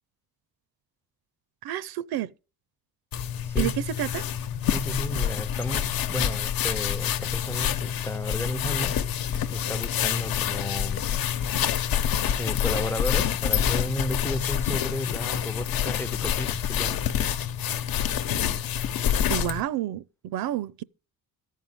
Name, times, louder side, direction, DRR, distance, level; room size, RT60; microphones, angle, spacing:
voice 1, 1.6-2.3 3.6-4.2 19.3-20.8, right 12 dB, 70° right, 0.7 m, -30 dB
sound 1, 3.1-19.6, left 9 dB, 65° left, 1.0 m, -27 dB
voice 2, 3.5-3.8 4.7-9.1 9.5-11.1 12.0-17.0, left 1 dB, 5° left, 0.5 m, -33 dB
14.0 x 5.4 x 8.9 m
cardioid pair, 160°, 38 cm